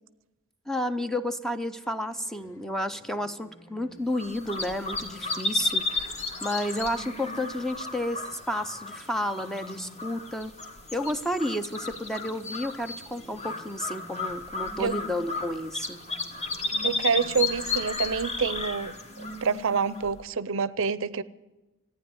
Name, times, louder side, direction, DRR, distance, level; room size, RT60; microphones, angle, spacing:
voice 1, 0.7-6.1 6.4-10.5 10.9-16.0, left 1 dB, ahead, 10 dB, 0.6 m, -31 dB
sound 1, 1.8-7.6 8.2-10.3 10.7-20.1, equal, 65° left, 3.3 m, -49 dB
sound 2, 4.1-20.2, left 3 dB, 30° left, 1.7 m, -34 dB
voice 2, 16.8-21.2, right 5 dB, 65° right, 17 dB, 0.6 m, -27 dB
15.0 x 9.8 x 9.5 m, 1.0 s
head